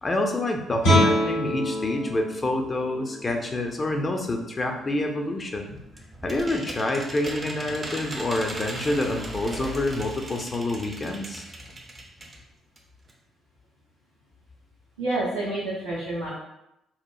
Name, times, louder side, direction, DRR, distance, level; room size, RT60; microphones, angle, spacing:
voice 1, 0.0-5.8 6.2-11.4, left 1 dB, 30° left, 3 dB, 0.4 m, -27 dB
Guitar, 0.8-6.4, equal, 70° left, 0.7 m, -28 dB
sound 1, 5.5-12.4 12.8-12.9 13.1-13.2, right 1 dB, 30° right, 0.4 m, -38 dB
voice 2, 15.0-16.4, right 2 dB, 80° right, -11 dB, 0.5 m, -29 dB
2.9 x 2.0 x 2.3 m, 0.85 s
figure-of-eight pair, 45°, 0 cm